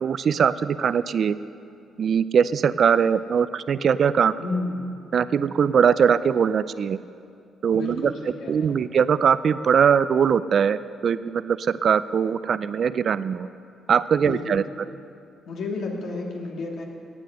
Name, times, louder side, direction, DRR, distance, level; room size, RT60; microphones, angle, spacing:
voice 1, 0.0-1.4 2.0-4.4 5.1-7.0 7.6-8.1 8.5-10.8 11.0-13.5 13.9-14.6, right 7 dB, 55° right, 15 dB, 0.4 m, -21 dB
voice 2, 4.4-4.9 7.7-8.8 14.2-14.7 15.5-16.8, left 3 dB, 70° left, -1 dB, 2.5 m, -31 dB
17.0 x 8.8 x 6.4 m, 2.5 s
cardioid pair, 90°, 0 cm